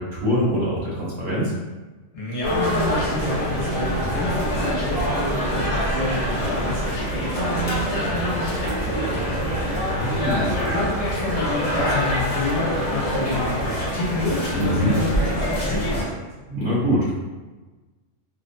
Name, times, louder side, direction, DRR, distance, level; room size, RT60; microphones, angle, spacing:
voice 1, 0.0-1.5 9.8-10.6 14.6-14.9 16.5-17.1, equal, 60° right, -7 dB, 1.0 m, -23 dB
voice 2, 2.1-10.2 10.5-16.3, left 2 dB, 65° left, -6 dB, 1.0 m, -29 dB
sound 1, 2.4-16.0, equal, 40° left, 0.9 m, -25 dB
2.7 x 2.0 x 2.5 m, 1.2 s
omnidirectional pair, 1.3 m